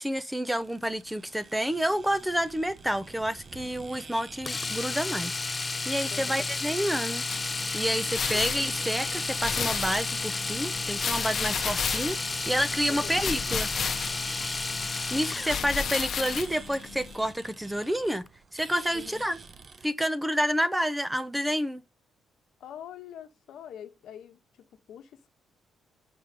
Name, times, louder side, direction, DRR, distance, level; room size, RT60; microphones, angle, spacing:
voice 1, 0.0-7.2 7.7-12.2 12.5-13.7 15.1-18.2 18.5-19.4 19.8-21.8, equal, 5° right, 0.7 m, -29 dB
sound 1, 0.6-19.9, right 4 dB, 40° right, 0.7 m, -47 dB
Domestic sounds home sounds, 4.5-15.7 17.8-18.0 18.3-18.4, left 3 dB, 25° left, 0.3 m, -32 dB
voice 2, 6.1-6.5 8.3-8.4 12.9-13.2 18.9-19.2 22.6-25.3, left 9 dB, 75° left, 1.0 m, -44 dB
sound 2, 7.3-17.3, left 7 dB, 55° left, 0.9 m, -34 dB
6.0 x 5.1 x 5.1 m
cardioid pair, 90°, 0 cm